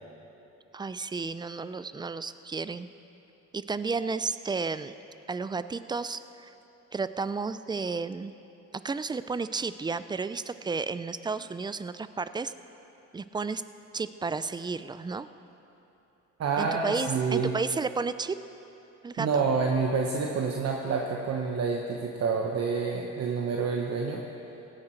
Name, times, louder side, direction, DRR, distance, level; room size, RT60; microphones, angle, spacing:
voice 1, 0.7-2.9 3.5-4.9 5.3-6.5 6.9-8.3 8.8-12.5 13.1-13.6 13.9-15.3 16.6-18.4 19.0-19.4, right 4 dB, 15° right, 13 dB, 0.4 m, -32 dB
voice 2, 16.4-17.5 19.2-24.2, right 5 dB, 55° right, 1 dB, 1.0 m, -28 dB
16.5 x 9.8 x 4.5 m, 3.0 s
cardioid pair, 90°, 30 cm